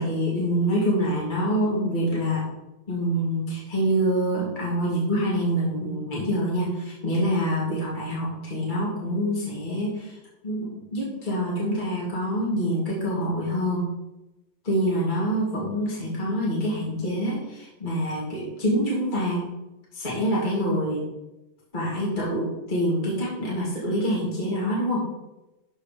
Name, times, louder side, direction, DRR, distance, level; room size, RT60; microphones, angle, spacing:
voice 1, 0.0-2.4 2.9-10.2 10.4-13.9 14.6-19.4 19.9-21.0 21.7-25.0, equal, 25° left, -6 dB, 2.6 m, -26 dB
12.5 x 4.3 x 5.0 m, 0.99 s
omnidirectional pair, 1.9 m